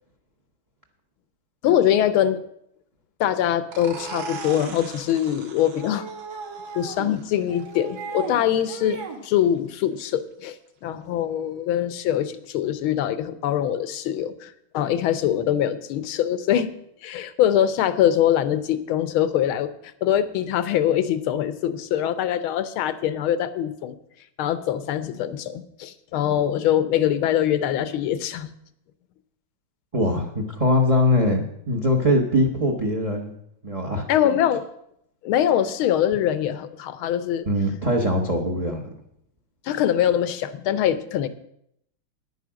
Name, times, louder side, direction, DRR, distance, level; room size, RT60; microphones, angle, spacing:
voice 1, 1.6-2.4 3.2-6.1 6.7-10.6 10.8-16.7 17.0-19.7 20.0-24.0 24.4-28.5 34.1-34.6 35.2-37.5 39.6-41.3, left 10 dB, 75° left, 13 dB, 1.6 m, -23 dB
sound 1, 3.7-4.8 5.8-7.1 7.5-8.4 8.7-9.2, right 5 dB, 50° right, 2.3 m, -36 dB
sound 2, 3.7-9.1, right 5 dB, 70° right, 2.1 m, -43 dB
voice 2, 29.9-33.3 33.6-34.1 37.5-38.8, left 1 dB, 25° right, 3 dB, 0.8 m, -22 dB
9.9 x 9.5 x 6.2 m, 0.74 s
omnidirectional pair, 2.4 m